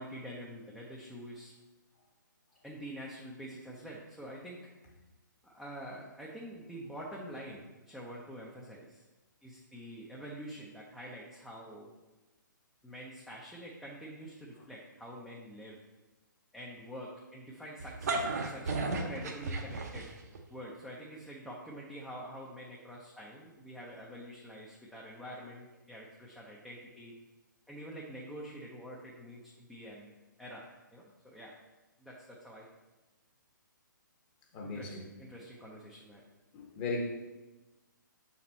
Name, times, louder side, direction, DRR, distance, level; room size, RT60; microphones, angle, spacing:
voice 1, 0.0-1.5 2.6-4.6 5.4-9.0 9.4-11.9 12.8-15.8 16.5-20.1 20.5-27.1 27.7-30.1 30.4-31.5 32.0-32.7 34.6-36.2, equal, ahead, -5 dB, 0.5 m, -46 dB
sound 1, 17.8-20.4, right 3 dB, 50° right, 0.8 m, -34 dB
voice 2, 34.5-35.0 36.5-37.0, left 3 dB, 25° left, 0 dB, 0.9 m, -36 dB
5.8 x 4.2 x 4.3 m, 1.1 s
figure-of-eight pair, 135°, 11 cm